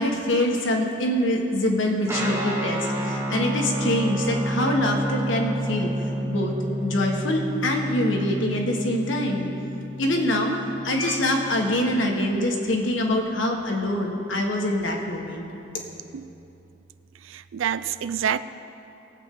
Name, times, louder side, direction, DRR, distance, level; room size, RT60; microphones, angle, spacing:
voice 1, 0.0-5.9 6.2-9.5 10.0-10.5 10.8-15.4, left 1 dB, 70° left, 1 dB, 1.5 m, -24 dB
Guitar, 2.1-11.9, equal, 10° right, 1.1 m, -30 dB
voice 2, 17.2-18.4, right 8 dB, 75° right, 13 dB, 0.4 m, -27 dB
20.5 x 8.2 x 3.8 m, 2.9 s
head